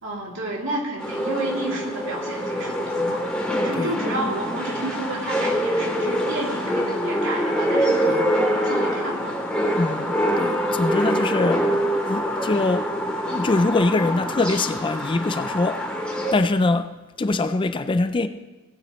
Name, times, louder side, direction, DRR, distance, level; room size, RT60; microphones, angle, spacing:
voice 1, 0.0-3.2 3.6-8.2 8.6-9.4, right 1 dB, 65° right, 2.7 m, -31 dB
sound 1, 1.0-16.3, equal, 5° left, 2.8 m, -25 dB
voice 2, 9.8-11.7 12.1-15.8 16.3-18.3, left 2 dB, 25° left, 0.4 m, -23 dB
18.5 x 9.0 x 3.0 m
head